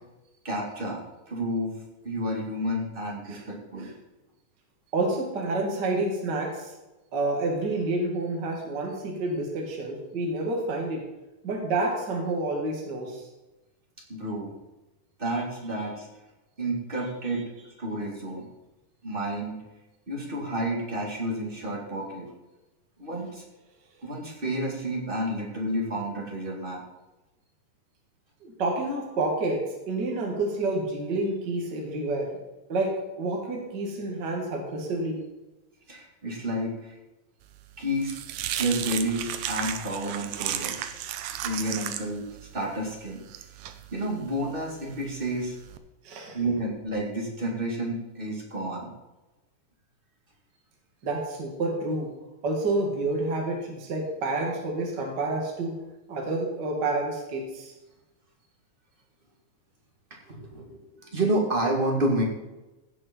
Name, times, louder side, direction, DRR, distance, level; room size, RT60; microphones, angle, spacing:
voice 1, 0.4-3.9 14.1-14.5 15.2-16.1 16.6-17.5 17.8-18.5 19.0-19.6 20.1-22.3 23.0-23.4 24.0-26.8 35.9-37.0 37.8-38.2 38.6-40.8 41.4-42.3 42.5-43.2 43.9-45.6 46.3-48.9 60.3-62.2, right 1 dB, 20° right, -1 dB, 1.8 m, -30 dB
voice 2, 4.9-6.7 7.1-11.1 11.4-13.3 28.4-32.3 32.7-35.2 46.0-46.4 51.0-52.1 52.4-55.8 56.1-57.7, right 2 dB, 35° right, 0 dB, 2.2 m, -29 dB
sound 1, 37.5-45.8, right 11 dB, 75° right, 1.8 m, -35 dB
16.5 x 6.5 x 4.4 m, 1.0 s
omnidirectional pair, 3.9 m